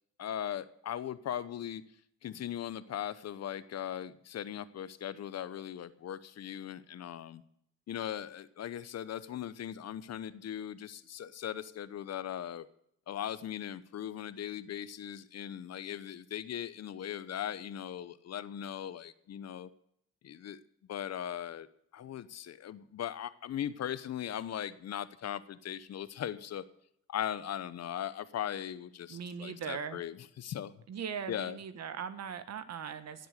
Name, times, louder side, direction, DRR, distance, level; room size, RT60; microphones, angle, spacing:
voice 1, 0.2-1.8 2.2-7.4 7.9-12.7 13.1-19.7 20.2-20.6 20.9-21.7 21.9-26.6 27.1-30.8 31.3-31.6, left 10 dB, 60° left, 15 dB, 0.9 m, -39 dB
voice 2, 29.1-30.0 30.9-33.3, right 7 dB, 60° right, 11 dB, 1.5 m, -39 dB
17.0 x 7.9 x 6.7 m, 0.72 s
cardioid pair, 90°, 30 cm